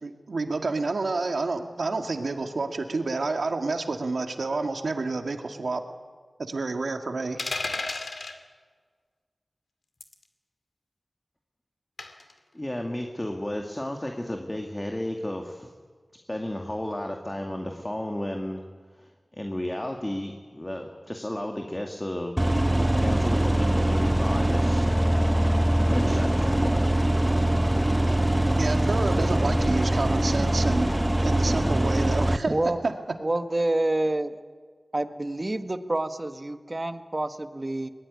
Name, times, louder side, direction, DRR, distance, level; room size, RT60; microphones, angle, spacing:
voice 1, 0.0-5.8 6.4-7.4 28.6-32.5 32.8-32.9, right 3 dB, 85° right, 5 dB, 2.0 m, -29 dB
sound 1, 7.4-8.4 10.0-10.2 12.0-12.3, left 3 dB, 75° left, 2.2 m, -32 dB
voice 2, 12.5-15.7 16.3-18.6 19.0-22.3 23.0-24.9 25.9-26.7, left 1 dB, 25° left, 3 dB, 2.4 m, -33 dB
sound 2, 22.4-32.4, right 1 dB, 10° right, 1.0 m, -23 dB
voice 3, 32.5-32.8 33.2-34.3 34.9-37.9, right 1 dB, 40° right, 8 dB, 1.6 m, -27 dB
22.5 x 20.0 x 9.7 m, 1.5 s
wide cardioid pair, 50°, 0 cm